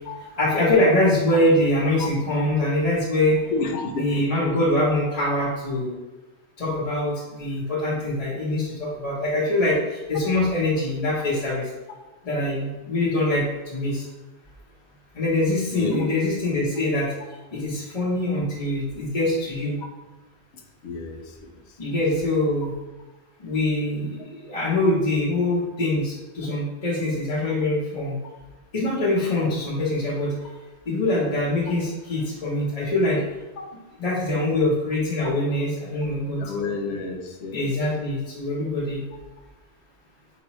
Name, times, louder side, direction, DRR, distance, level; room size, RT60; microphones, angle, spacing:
voice 1, 0.4-3.4 4.0-5.9 6.6-9.8 10.1-11.7 12.2-13.4 13.7-14.0 15.1-17.1 17.5-19.8 21.8-22.7 23.4-24.1 24.5-28.1 28.7-30.3 30.9-33.2 34.0-36.4 37.5-39.0, left 1 dB, 35° left, -7 dB, 0.9 m, -23 dB
voice 2, 3.5-4.2 10.1-10.2 15.7-16.1 20.8-21.9 33.6-33.7 35.2-35.3 36.4-37.7, left 3 dB, 75° left, 3 dB, 0.9 m, -30 dB
4.7 x 3.0 x 3.0 m, 1.1 s
omnidirectional pair, 1.2 m